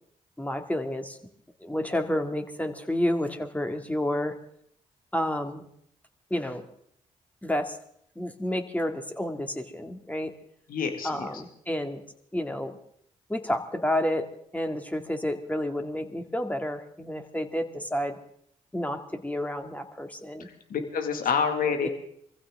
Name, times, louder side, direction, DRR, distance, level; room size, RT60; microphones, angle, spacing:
voice 1, 0.4-1.2 1.6-4.4 5.1-5.6 6.3-6.6 7.4-7.8 8.2-10.3 11.0-12.0 12.3-12.8 13.3-18.2 18.7-20.5 21.8-21.9, left 1 dB, 10° left, 6 dB, 2.3 m, -30 dB
voice 2, 10.7-11.3 20.7-21.9, left 6 dB, 70° left, 6 dB, 2.0 m, -27 dB
23.0 x 15.0 x 3.7 m, 0.67 s
supercardioid pair, 45°, 15 cm